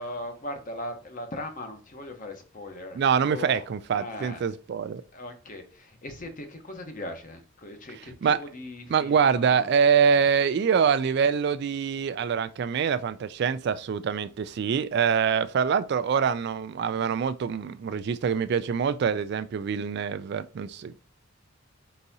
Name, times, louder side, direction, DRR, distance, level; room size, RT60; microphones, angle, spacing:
voice 1, 0.0-3.6 3.9-4.4 5.1-9.7, left 1 dB, 40° left, 0.9 m, -39 dB
voice 2, 3.0-5.0 8.2-8.4 8.9-20.9, right 6 dB, 55° right, 0.3 m, -25 dB
4.7 x 4.0 x 2.7 m
head